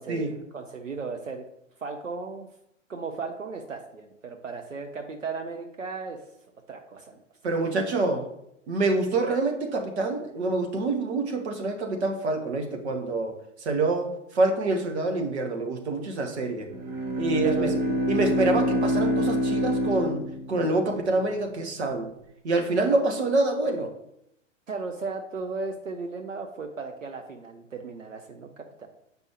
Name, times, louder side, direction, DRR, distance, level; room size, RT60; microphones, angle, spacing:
voice 1, 0.0-1.4 1.8-2.5 2.9-6.2 6.7-7.5 17.4-18.2 24.7-28.9, right 4 dB, 80° right, 4 dB, 0.8 m, -36 dB
voice 2, 7.4-8.2 8.7-13.3 13.6-16.7 17.2-17.7 18.1-20.2 20.5-22.1 22.4-23.9, right 2 dB, 60° right, 3 dB, 1.3 m, -26 dB
Bowed string instrument, 16.7-21.0, equal, 30° right, 1.1 m, -26 dB
8.0 x 5.3 x 3.1 m, 0.80 s
figure-of-eight pair, 100°, 38 cm